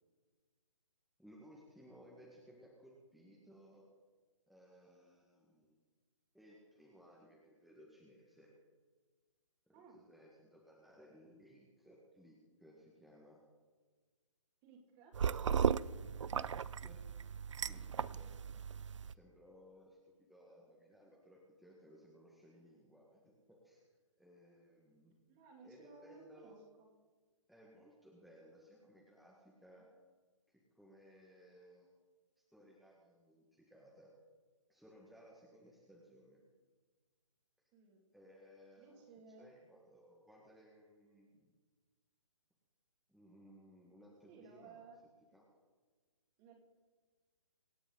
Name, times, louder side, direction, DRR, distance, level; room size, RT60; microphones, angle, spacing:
voice 1, 1.2-3.8 4.5-5.8 6.3-8.5 9.7-13.4 15.3-15.7 16.0-17.0 17.6-18.3 18.9-23.9 24.2-25.2 25.6-26.6 27.5-29.9 30.5-31.9 32.5-34.1 34.7-36.4 38.1-39.0 39.4-41.5 43.1-44.9 45.3-45.5, equal, ahead, -4 dB, 1.8 m, -61 dB
voice 2, 9.7-10.0 14.6-15.2 18.1-18.4 25.3-26.9 37.7-38.0 38.8-39.5 44.3-45.0 46.4-46.5, right 4 dB, 25° right, 2 dB, 2.7 m, -58 dB
sound 1, 15.1-19.1, right 7 dB, 65° right, 0.5 m, -36 dB
25.0 x 9.1 x 4.0 m, 1.4 s
figure-of-eight pair, 140°, 17 cm